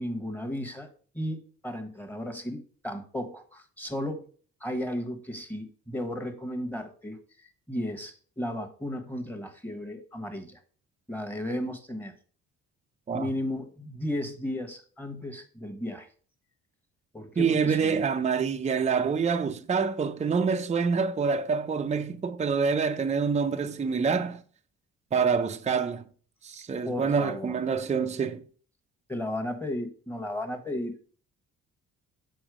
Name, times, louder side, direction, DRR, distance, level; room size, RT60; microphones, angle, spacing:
voice 1, 0.0-4.3 4.6-10.6 11.1-12.1 13.1-16.1 17.1-18.1 26.8-27.6 29.1-31.0, left 1 dB, 5° left, 1.3 m, -34 dB
voice 2, 17.4-24.4 25.1-26.1 26.4-28.4, right 5 dB, 25° right, 0.6 m, -26 dB
6.2 x 4.5 x 4.8 m
cardioid pair, 90°, 30 cm